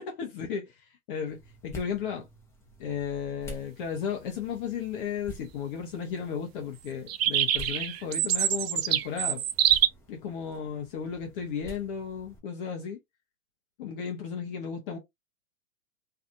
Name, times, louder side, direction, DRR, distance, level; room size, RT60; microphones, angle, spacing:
voice 1, 0.0-2.3 2.8-9.4 10.1-13.0 13.8-15.0, left 7 dB, 40° left, 0.7 m, -34 dB
sound 1, 1.3-12.4, right 1 dB, 5° left, 0.7 m, -49 dB
sound 2, 7.1-9.9, right 11 dB, 50° right, 0.5 m, -25 dB
2.6 x 2.4 x 2.4 m
hypercardioid pair, 115°, 41 cm